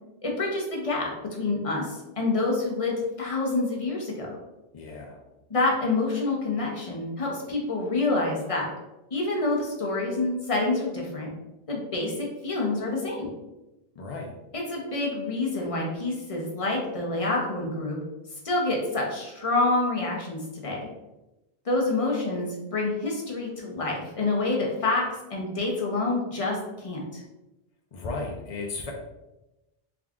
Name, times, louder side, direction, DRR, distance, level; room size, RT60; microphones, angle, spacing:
voice 1, 0.2-4.3 5.5-8.7 9.1-11.3 11.7-13.3 14.5-18.0 18.4-20.8 21.6-25.0 25.3-27.2, left 2 dB, 35° left, -2 dB, 0.8 m, -27 dB
voice 2, 4.7-5.2 14.0-14.3 27.9-28.9, left 3 dB, 55° left, 0 dB, 0.4 m, -35 dB
3.7 x 2.3 x 3.5 m, 0.99 s
omnidirectional pair, 1.2 m